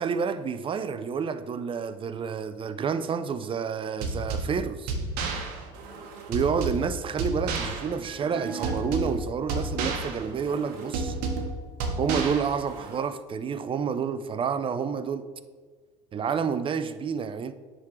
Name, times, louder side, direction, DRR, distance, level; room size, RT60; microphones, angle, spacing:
voice 1, 0.0-4.9 6.3-11.2 12.0-15.3 16.1-17.5, right 6 dB, 30° right, 0.5 m, -29 dB
sound 1, 4.0-13.0, right 3 dB, 65° right, 1.1 m, -32 dB
9.5 x 3.8 x 4.6 m
hypercardioid pair, 75°, 17 cm